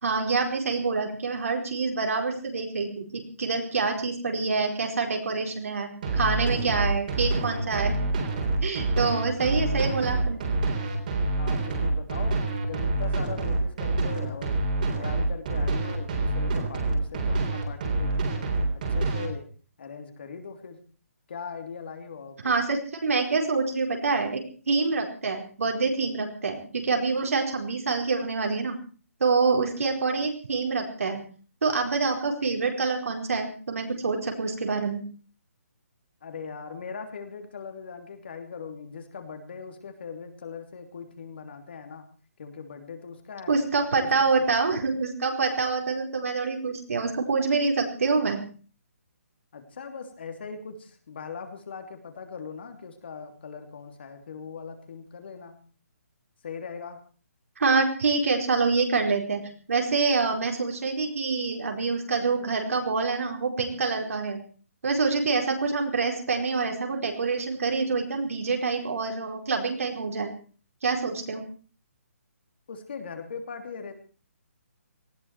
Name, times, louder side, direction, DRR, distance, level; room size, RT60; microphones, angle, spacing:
voice 1, 0.0-8.0 8.6-10.4 22.4-28.8 29.2-31.2 31.6-35.0 43.5-48.4 57.6-59.4 59.7-64.4 64.8-70.3 70.8-71.4, right 4 dB, 65° right, 2 dB, 4.7 m, -26 dB
sound 1, 6.0-19.3, right 2 dB, 35° right, 3.7 m, -27 dB
voice 2, 11.3-14.6 14.9-18.3 18.9-19.5 19.8-20.8 21.3-22.5 36.2-42.1 42.4-43.6 43.9-44.3 49.5-55.6 56.4-57.0 72.7-73.9, left 5 dB, 45° left, 6 dB, 2.9 m, -40 dB
19.0 x 15.5 x 4.8 m, 0.39 s
hypercardioid pair, 175°, 8 cm